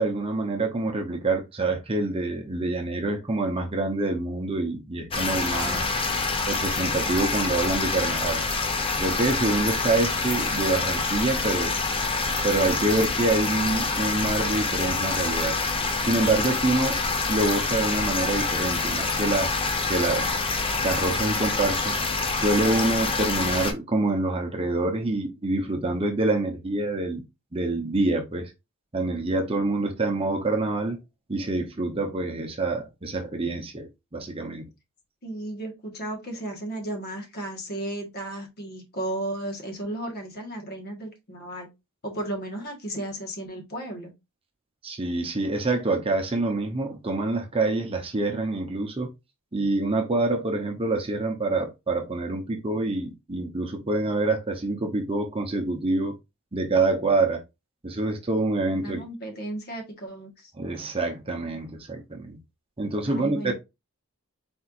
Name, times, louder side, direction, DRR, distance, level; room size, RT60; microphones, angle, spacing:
voice 1, 0.0-6.0 6.5-8.4 9.0-11.7 12.4-15.6 16.0-17.0 17.3-19.6 19.9-20.4 20.8-22.0 22.3-27.2 27.5-28.5 28.9-31.0 31.3-34.7 44.8-49.1 49.5-56.2 56.5-57.4 57.8-59.0 60.6-62.4 62.8-63.5, right 2 dB, 25° right, 0.7 m, -26 dB
sound 1, 5.1-23.7, left 3 dB, 25° left, 0.6 m, -26 dB
voice 2, 5.4-5.9 35.2-41.7 42.0-44.1 58.7-60.5 63.0-63.5, right 1 dB, 45° left, 1.4 m, -34 dB
4.3 x 4.3 x 2.5 m
head